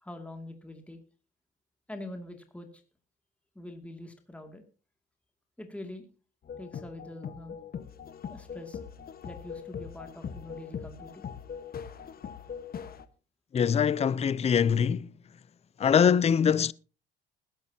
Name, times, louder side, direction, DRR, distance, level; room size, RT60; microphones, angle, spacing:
voice 1, 0.0-1.0 1.9-2.7 3.6-4.6 5.6-6.1 6.6-7.6 8.3-8.8 9.2-11.3, left 1 dB, 5° left, 2.3 m, -44 dB
sound 1, 6.4-13.1, left 7 dB, 50° left, 1.3 m, -41 dB
voice 2, 13.5-15.1 15.8-16.7, left 7 dB, 30° left, 0.5 m, -23 dB
20.5 x 11.0 x 2.8 m
cardioid pair, 100°, 20 cm